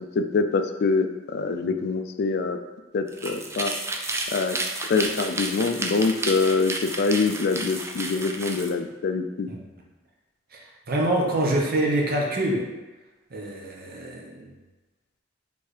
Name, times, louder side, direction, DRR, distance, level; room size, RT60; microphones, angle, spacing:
voice 1, 0.2-2.6 2.9-3.7 4.3-4.6 4.9-9.5, left 4 dB, 55° left, 7 dB, 0.4 m, -24 dB
sound 1, 3.1-8.7, right 2 dB, 15° right, 0.4 m, -31 dB
voice 2, 10.9-12.7 13.3-14.5, right 1 dB, 50° right, -1 dB, 0.9 m, -25 dB
4.5 x 3.4 x 3.2 m, 1.2 s
head